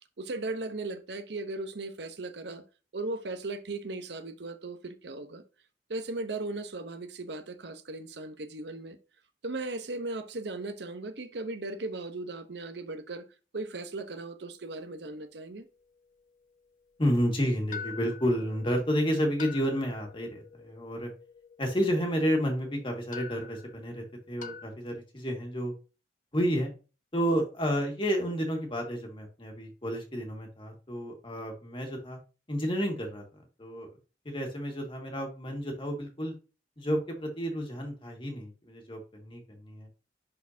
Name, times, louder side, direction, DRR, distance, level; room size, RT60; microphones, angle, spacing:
voice 1, 0.2-2.6 2.9-5.4 5.9-9.0 9.4-13.3 13.5-15.7, right 2 dB, 70° right, 0.8 m, -37 dB
sound 1, 14.6-16.2 16.6-16.7 17.7-24.7, left 7 dB, 45° left, 0.6 m, -47 dB
voice 2, 17.0-21.1 21.6-25.7 26.3-26.7 27.1-32.2 32.5-33.2 33.6-33.9 34.3-36.3 36.8-39.9, equal, 30° left, 1.8 m, -30 dB
10.5 x 4.2 x 2.7 m
head